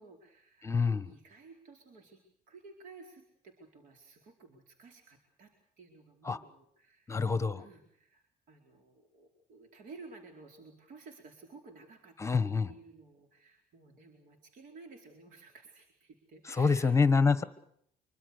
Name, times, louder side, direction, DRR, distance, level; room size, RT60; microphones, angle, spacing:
voice 1, 0.0-0.8 1.0-2.2 2.5-7.1 7.5-12.4 12.7-17.4, right 3 dB, 70° right, 4 dB, 4.5 m, -54 dB
voice 2, 0.6-1.1 6.2-6.4 7.1-7.6 12.2-12.7 16.4-17.4, left 4 dB, 20° left, 13 dB, 1.3 m, -26 dB
25.5 x 24.0 x 6.7 m, 0.68 s
cardioid pair, 125°, 15 cm